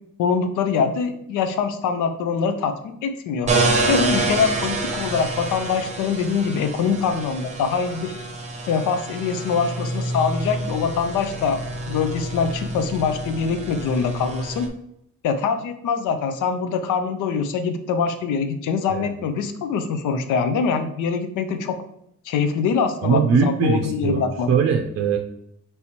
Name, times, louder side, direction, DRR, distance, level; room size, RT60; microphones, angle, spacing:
voice 1, 0.2-3.5 3.9-8.1 8.7-11.6 11.9-14.7 15.2-21.8 22.3-24.5, left 6 dB, 80° left, 8 dB, 0.6 m, -24 dB
sound 1, 3.5-14.7, right 2 dB, 25° right, 0.8 m, -27 dB
voice 2, 23.0-24.2 24.5-25.2, right 6 dB, 50° right, 3 dB, 0.5 m, -20 dB
4.3 x 3.5 x 2.8 m, 0.74 s
cardioid pair, 90°, 30 cm